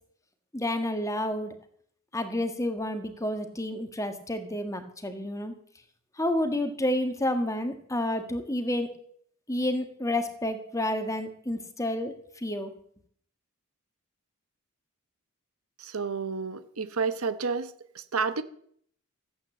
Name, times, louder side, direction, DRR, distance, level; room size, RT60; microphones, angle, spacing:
voice 1, 0.5-1.5 2.1-5.5 6.2-8.9 9.5-12.7, left 1 dB, 15° left, 7 dB, 1.6 m, -30 dB
voice 2, 15.8-18.4, right 5 dB, 75° right, 12 dB, 1.1 m, -30 dB
15.0 x 8.5 x 7.7 m, 0.63 s
head